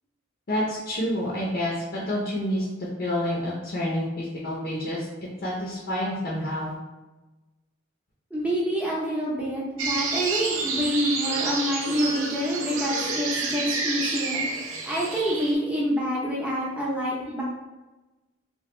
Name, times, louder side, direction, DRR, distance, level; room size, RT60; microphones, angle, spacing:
voice 1, 0.5-2.7 3.0-5.0 5.4-6.7, left 1 dB, 50° left, -5 dB, 0.6 m, -28 dB
voice 2, 8.3-14.5 14.9-17.4, equal, 5° right, -5 dB, 0.7 m, -27 dB
sound 1, 9.8-15.5, right 4 dB, 75° right, 0.5 m, -29 dB
2.9 x 2.2 x 3.2 m, 1.1 s
head